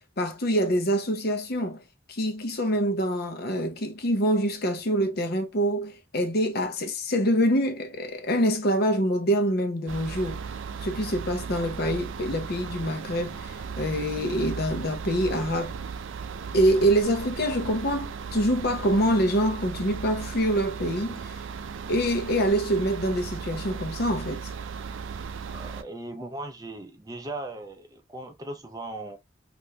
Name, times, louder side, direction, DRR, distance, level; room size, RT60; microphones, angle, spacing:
voice 1, 0.2-1.8 2.1-10.4 10.8-15.7 16.5-21.4 21.9-24.5, equal, 55° left, 0.7 m, -25 dB
sound 1, 9.9-25.8, right 6 dB, 80° right, 0.4 m, -36 dB
voice 2, 25.5-29.2, right 2 dB, 20° right, 0.5 m, -38 dB
3.2 x 2.5 x 2.8 m
head